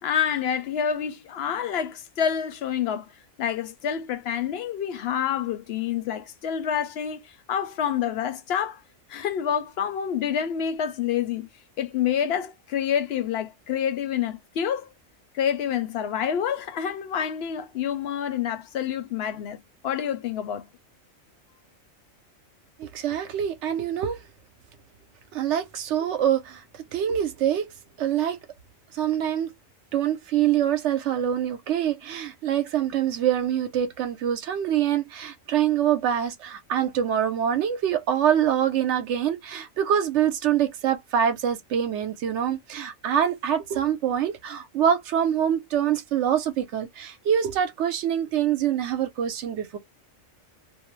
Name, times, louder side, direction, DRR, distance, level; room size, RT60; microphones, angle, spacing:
voice 1, 0.0-3.1 3.4-8.8 9.1-11.5 11.8-14.9 15.3-19.6 19.8-20.7, left 8 dB, 60° left, 0.7 m, -27 dB
voice 2, 22.8-24.2 25.3-26.6 26.9-27.6 28.0-28.4 28.9-29.5 29.9-49.8, right 9 dB, 65° right, 0.9 m, -25 dB
2.5 x 2.0 x 3.0 m
omnidirectional pair, 1.4 m